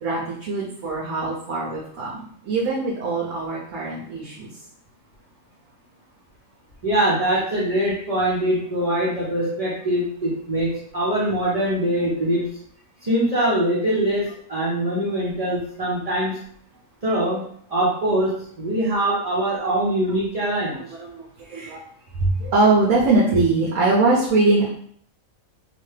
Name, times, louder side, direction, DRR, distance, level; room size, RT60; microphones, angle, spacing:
voice 1, 0.0-4.5 20.7-21.8 22.2-24.7, right 3 dB, 70° right, -5 dB, 1.0 m, -22 dB
voice 2, 6.8-12.5 13.0-16.4 17.0-17.4 17.7-20.8, right 1 dB, 40° right, -7 dB, 0.6 m, -23 dB
3.0 x 2.2 x 3.1 m, 0.63 s
omnidirectional pair, 1.4 m